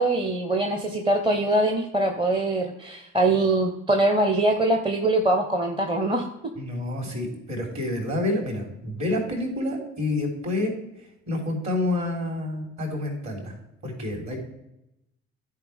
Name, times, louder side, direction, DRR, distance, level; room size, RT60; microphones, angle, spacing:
voice 1, 0.0-6.2, right 2 dB, 10° right, 5 dB, 0.9 m, -23 dB
voice 2, 6.6-10.7 11.3-13.5 13.8-14.4, left 2 dB, 40° right, 0 dB, 3.7 m, -28 dB
14.0 x 4.8 x 3.4 m, 0.87 s
figure-of-eight pair, 45°, 42 cm